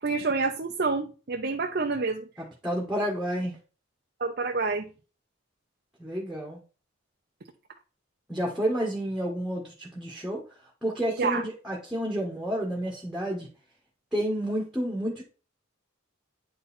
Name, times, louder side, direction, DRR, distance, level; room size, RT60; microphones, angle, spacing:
voice 1, 0.0-2.2 4.2-4.9 11.2-11.4, right 4 dB, 50° right, 0.7 m, -28 dB
voice 2, 2.4-3.6 6.0-6.6 8.3-10.4 10.8-13.5 14.1-15.2, right 1 dB, ahead, 1.5 m, -30 dB
9.3 x 4.0 x 4.3 m
head